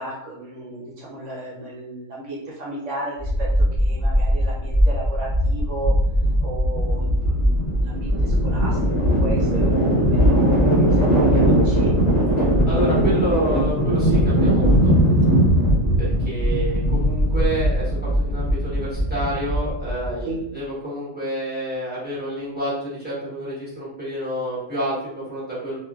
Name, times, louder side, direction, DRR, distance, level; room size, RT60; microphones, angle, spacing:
voice 1, 0.0-3.5 3.8-5.9 6.4-7.1 7.4-8.8 9.2-10.9 11.2-11.9 13.0-13.3 20.2-20.4, right 2 dB, 65° right, -5 dB, 1.0 m, -33 dB
sound 1, 3.2-20.2, equal, 35° left, 0.9 m, -19 dB
voice 2, 12.4-15.0 16.2-25.8, right 1 dB, 10° right, -9 dB, 0.9 m, -29 dB
2.7 x 2.5 x 2.3 m, 0.78 s
omnidirectional pair, 1.4 m